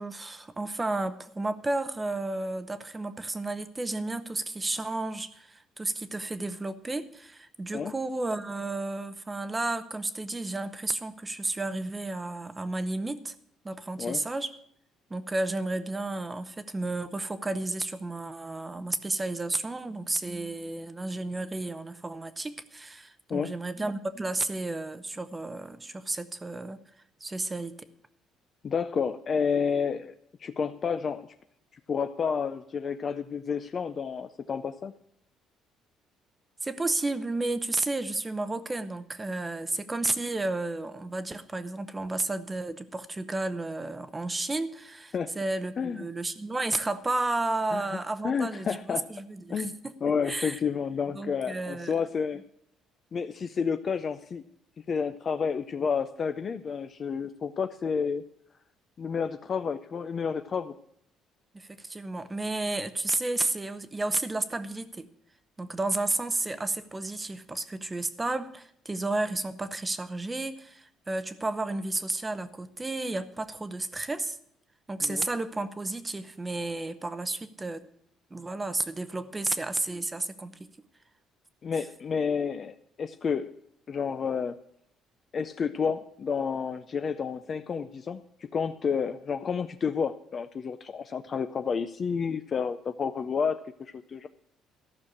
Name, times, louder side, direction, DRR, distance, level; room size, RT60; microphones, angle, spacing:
voice 1, 0.0-13.3 13.6-14.5 15.1-26.8 27.2-27.7 36.6-49.9 50.2-50.6 51.1-51.9 61.5-65.0 65.6-74.4 74.9-77.9 78.3-80.5, right 2 dB, 15° right, 12 dB, 0.7 m, -32 dB
voice 2, 28.6-30.1 30.4-31.3 31.9-34.9 45.1-45.3 45.8-46.1 47.7-47.8 48.2-49.1 49.5-52.4 53.1-54.4 54.9-58.2 59.0-60.7 75.0-75.3 81.6-83.5 83.9-84.6 85.3-88.2 88.5-94.3, left 6 dB, 30° left, 9 dB, 0.4 m, -30 dB
14.0 x 6.4 x 8.5 m, 0.69 s
cardioid pair, 170°, 0 cm